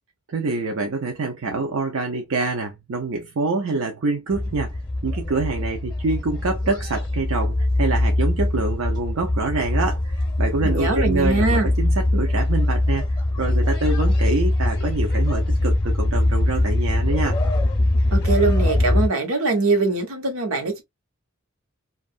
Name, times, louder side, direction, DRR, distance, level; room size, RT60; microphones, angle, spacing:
voice 1, 0.3-17.4, right 3 dB, 70° right, 0.6 m, -26 dB
sound 1, 4.3-19.1, left 1 dB, 20° left, 0.7 m, -22 dB
voice 2, 10.6-11.7 18.1-20.8, right 3 dB, 90° right, 1.0 m, -22 dB
2.7 x 2.4 x 2.4 m
head